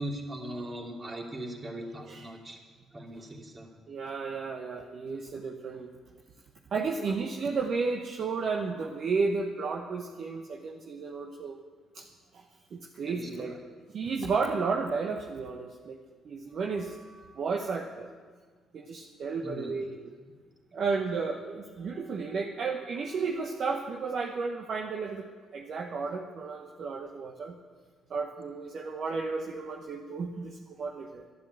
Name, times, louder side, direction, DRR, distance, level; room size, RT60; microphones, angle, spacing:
voice 1, 0.0-2.6 2.9-3.7 13.0-13.6 19.4-19.8, right 1 dB, 30° right, 0 dB, 3.0 m, -39 dB
voice 2, 3.9-5.9 6.7-11.6 11.9-12.1 12.3-12.4 12.7-13.6 13.9-16.0 16.2-18.1 18.7-20.1 20.7-25.3 25.5-27.6 28.1-31.2, right 4 dB, 55° right, 2 dB, 1.1 m, -33 dB
11.5 x 10.5 x 7.9 m, 1.5 s
hypercardioid pair, 50°, 0 cm